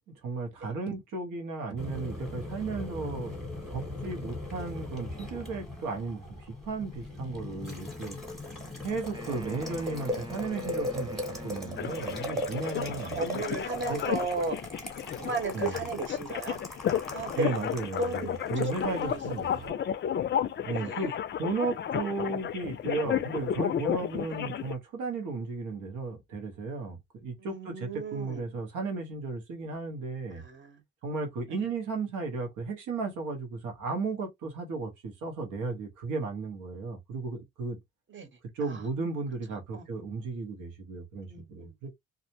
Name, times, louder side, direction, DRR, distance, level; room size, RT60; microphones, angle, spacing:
voice 1, 0.1-3.4 3.7-8.2 8.8-13.2 13.9-14.0 15.2-15.3 15.5-15.8 17.3-19.6 20.6-21.1 21.4-30.4 31.0-37.8 38.5-41.9, right 4 dB, 85° right, 1.0 m, -35 dB
Boiling, 1.8-19.7, left 1 dB, ahead, 1.0 m, -39 dB
Wind instrument woodwind instrument, 9.1-12.6, right 2 dB, 15° right, 0.7 m, -46 dB
sound 1, 11.8-24.7, left 9 dB, 40° left, 0.4 m, -33 dB
voice 2, 13.0-14.6 15.2-16.6 17.0-17.6 18.0-19.8 20.7-21.1 27.4-28.4 30.3-30.8 38.1-38.3 38.6-38.8 39.7-39.8 41.2-41.7, right 4 dB, 40° right, 1.0 m, -35 dB
2.4 x 2.0 x 2.7 m
cardioid pair, 90°, 30 cm